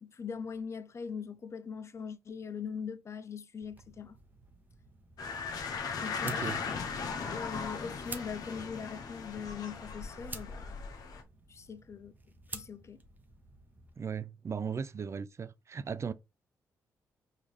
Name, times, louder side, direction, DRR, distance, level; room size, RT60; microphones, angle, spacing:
voice 1, 0.0-4.2 6.0-6.8 7.3-10.8 11.5-12.1 12.5-13.0, left 6 dB, 45° left, 0.5 m, -41 dB
sound 1, 3.6-14.0, right 2 dB, 25° right, 0.9 m, -51 dB
sound 2, 5.2-11.2, left 5 dB, 70° left, 0.8 m, -38 dB
voice 2, 6.2-6.6 14.0-16.1, right 6 dB, 45° right, 0.5 m, -37 dB
5.0 x 2.8 x 3.2 m
supercardioid pair, 50°, 7 cm